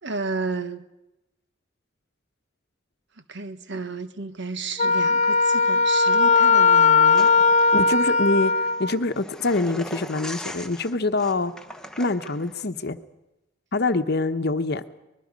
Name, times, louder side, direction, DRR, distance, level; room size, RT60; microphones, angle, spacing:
voice 1, 0.0-0.8 3.3-7.3, right 3 dB, 65° right, 10 dB, 1.3 m, -32 dB
Wind instrument woodwind instrument, 4.8-8.9, left 4 dB, 35° left, 0.7 m, -18 dB
sound 1, 7.1-12.6, left 1 dB, 5° left, 1.1 m, -41 dB
voice 2, 7.7-8.5 8.8-11.5 12.0-13.0 13.7-14.8, left 2 dB, 55° left, 10 dB, 1.0 m, -25 dB
24.0 x 21.0 x 5.3 m, 0.95 s
head